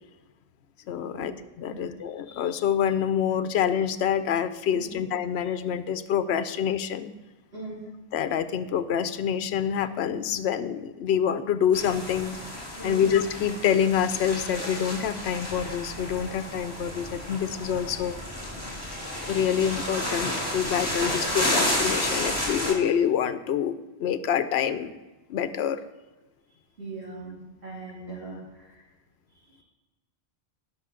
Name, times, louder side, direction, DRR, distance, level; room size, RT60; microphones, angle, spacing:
voice 1, 0.9-7.1 8.1-12.4 12.8-18.2 19.3-23.7 24.0-25.0 25.3-25.8, left 8 dB, 85° left, 12 dB, 0.9 m, -26 dB
sound 1, 11.7-22.7, left 1 dB, 15° left, 2.9 m, -31 dB
voice 2, 26.8-28.8 29.5-29.6, right 3 dB, 80° right, -9 dB, 3.1 m, -40 dB
18.0 x 6.3 x 3.7 m, 1.1 s
omnidirectional pair, 1.1 m